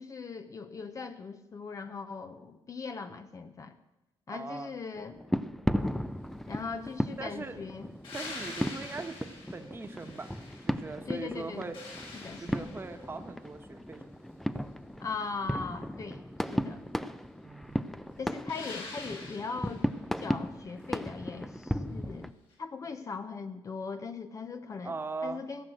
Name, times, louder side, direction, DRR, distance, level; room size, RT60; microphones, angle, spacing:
voice 1, 0.0-3.8 4.3-5.2 6.5-7.9 11.1-11.7 12.1-12.7 15.0-16.8 18.2-19.9 20.2-22.3 22.6-24.9 25.2-25.6, left 4 dB, 35° left, 9 dB, 0.7 m, -39 dB
voice 2, 4.3-4.7 7.2-7.6 8.1-10.3 10.7-11.7 12.4-14.1 17.4-17.8 24.8-25.4, right 3 dB, 25° right, 7 dB, 1.2 m, -40 dB
sound 1, 5.0-22.3, equal, 5° left, 0.4 m, -36 dB
sound 2, 8.0-11.0 11.4-13.1 18.5-19.9 22.5-22.6, left 3 dB, 65° left, 4.4 m, -45 dB
16.0 x 6.3 x 7.8 m, 1.0 s
cardioid pair, 100°, 10 cm